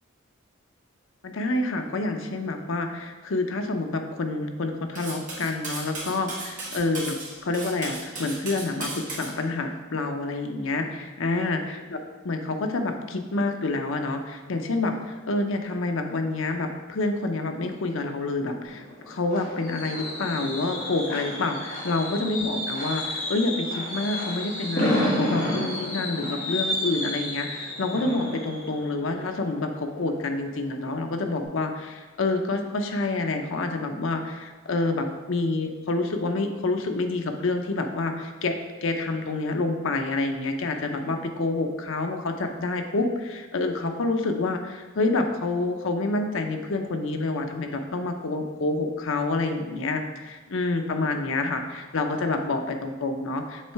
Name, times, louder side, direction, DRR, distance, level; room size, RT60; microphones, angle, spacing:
voice 1, 1.2-7.1 7.4-12.0 12.2-38.5 38.8-53.7, left 2 dB, 65° left, 5 dB, 0.6 m, -28 dB
Cutlery silverware, 4.9-9.3, right 2 dB, 35° right, 1.5 m, -36 dB
Fireworks, 18.6-30.3 30.7-31.0 31.3-31.4, left 1 dB, 45° left, 1.8 m, -31 dB
7.4 x 3.2 x 4.6 m, 1.3 s
head